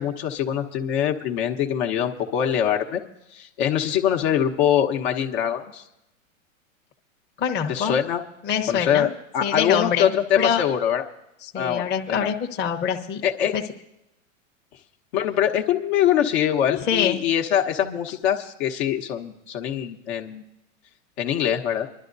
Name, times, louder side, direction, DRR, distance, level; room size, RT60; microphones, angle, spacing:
voice 1, 0.0-3.0 3.3-5.8 7.7-8.2 8.7-11.1 11.5-12.3 13.2-13.6 15.1-20.4 21.2-21.9, left 9 dB, 50° left, 3 dB, 1.2 m, -23 dB
voice 2, 7.4-8.0 8.4-9.1 9.4-10.6 11.4-13.2 13.5-13.6 16.9-17.2, left 8 dB, 25° left, 1 dB, 1.1 m, -25 dB
26.0 x 12.0 x 2.7 m, 0.90 s
hypercardioid pair, 120°, 40 cm